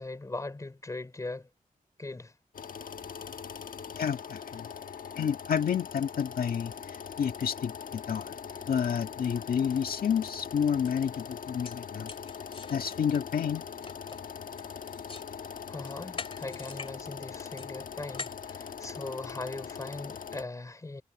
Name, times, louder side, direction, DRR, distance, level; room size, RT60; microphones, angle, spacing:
voice 1, 0.0-1.5 2.0-2.4 15.7-21.0, left 2 dB, 20° left, 3.8 m, -40 dB
sound 1, 2.5-20.4, left 7 dB, 70° left, 1.3 m, -42 dB
voice 2, 4.0-4.7 5.2-8.3 8.7-12.1 12.7-13.7, left 7 dB, 90° left, 1.9 m, -30 dB
sound 2, 10.3-10.4 10.9-11.0 11.4-15.3 15.7-17.0 17.2-19.4, left 4 dB, 40° left, 2.4 m, -45 dB
wide cardioid pair, 155°, 15 cm